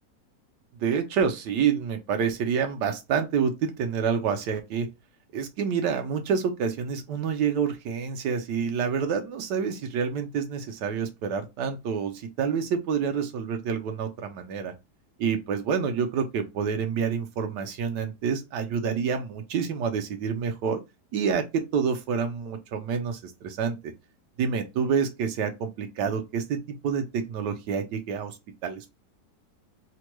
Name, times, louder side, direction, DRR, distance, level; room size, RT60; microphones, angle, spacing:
voice 1, 0.8-4.9 5.3-14.7 15.2-20.8 21.1-23.8 24.4-28.4 28.6-28.9, right 6 dB, 85° right, 1.3 m, -28 dB
3.4 x 2.2 x 3.0 m
omnidirectional pair, 1.8 m